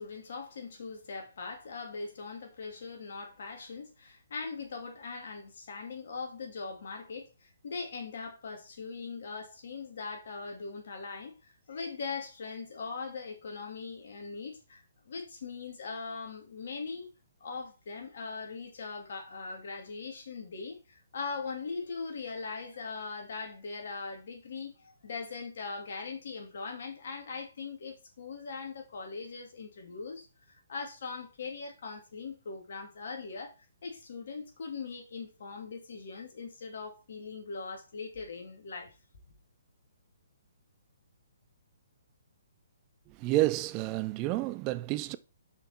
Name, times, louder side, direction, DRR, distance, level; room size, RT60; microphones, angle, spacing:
voice 1, 0.0-17.1 17.4-33.5 33.8-38.9, left 4 dB, 60° left, 2.6 m, -40 dB
voice 2, 43.2-45.2, right 17 dB, 30° right, 0.4 m, -29 dB
6.3 x 5.7 x 4.4 m
figure-of-eight pair, 135°, 0 cm